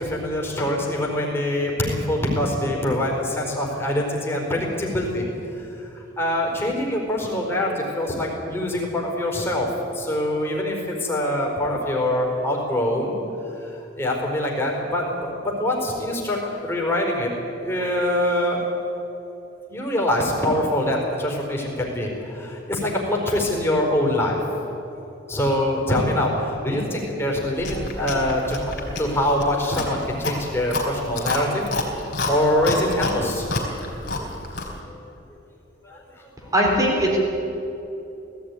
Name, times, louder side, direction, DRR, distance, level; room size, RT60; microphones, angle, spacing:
voice 1, 0.0-5.2 6.2-13.1 14.0-17.3 17.6-18.6 19.7-24.4 25.3-31.6 31.9-33.5 34.9-35.0 35.8-36.0 36.4-36.5, left 1 dB, 10° left, -2 dB, 4.4 m, -24 dB
Chewing mastication, 27.6-34.8, left 2 dB, 55° left, 4.2 m, -29 dB
voice 2, 36.5-37.2, equal, 15° right, -1 dB, 4.4 m, -19 dB
18.5 x 15.0 x 9.7 m, 2.9 s
head